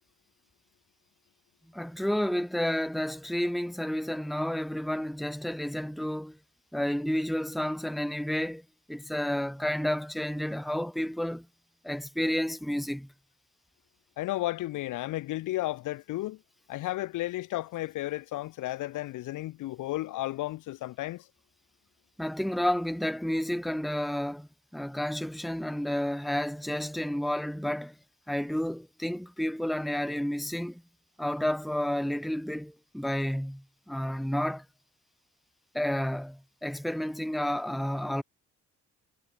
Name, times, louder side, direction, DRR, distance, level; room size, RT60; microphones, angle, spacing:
voice 1, 1.7-6.4 6.7-11.5 11.8-13.1 22.2-28.0 28.3-30.8 31.2-34.6 35.7-38.2, equal, ahead, 1.0 m, -31 dB
voice 2, 14.2-16.4 16.7-21.3, left 16 dB, 90° left, 2.6 m, -33 dB
cardioid pair, 90°, 30 cm